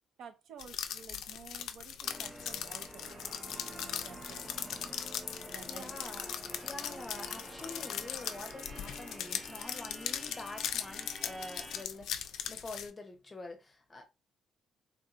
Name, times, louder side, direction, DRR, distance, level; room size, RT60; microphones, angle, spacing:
voice 1, 0.2-3.3 4.0-4.5 5.4-6.0, right 7 dB, 70° right, 0.6 m, -52 dB
sound 1, 0.6-12.9, left 9 dB, 75° left, 0.3 m, -39 dB
sound 2, 2.0-11.8, right 1 dB, 10° right, 0.4 m, -49 dB
sound 3, 3.0-9.6, right 4 dB, 50° right, 0.9 m, -54 dB
voice 2, 5.7-6.3 6.6-14.1, left 2 dB, 20° left, 0.7 m, -46 dB
3.5 x 2.6 x 2.4 m
cardioid pair, 155°, 0 cm